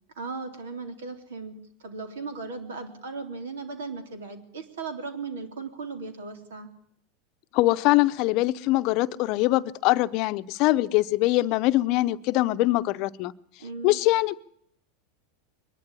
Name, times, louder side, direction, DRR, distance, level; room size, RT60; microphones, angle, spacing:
voice 1, 0.2-1.6 1.8-6.7 13.6-14.0, right 4 dB, 90° right, 3.6 m, -37 dB
voice 2, 7.5-13.3 13.8-14.4, left 18 dB, 55° left, 0.7 m, -23 dB
23.0 x 11.5 x 10.0 m
supercardioid pair, 120°, 0 cm